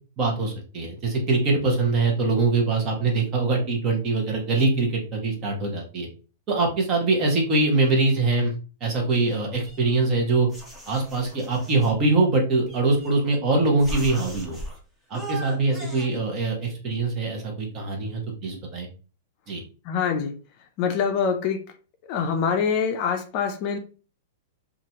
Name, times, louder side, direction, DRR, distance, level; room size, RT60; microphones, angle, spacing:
voice 1, 0.2-6.1 6.5-8.5 8.8-10.5 10.9-14.6 15.1-18.9 19.5-19.6, right 3 dB, 30° right, 1.0 m, -23 dB
sound 1, 9.3-10.1 10.5-12.0 12.7-13.4 13.8-14.8 15.1-16.1, right 2 dB, 5° right, 0.8 m, -38 dB
voice 2, 19.9-20.4 20.8-21.6 22.1-23.8, left 6 dB, 40° left, 0.4 m, -24 dB
2.9 x 2.4 x 2.8 m
hypercardioid pair, 145°, 0 cm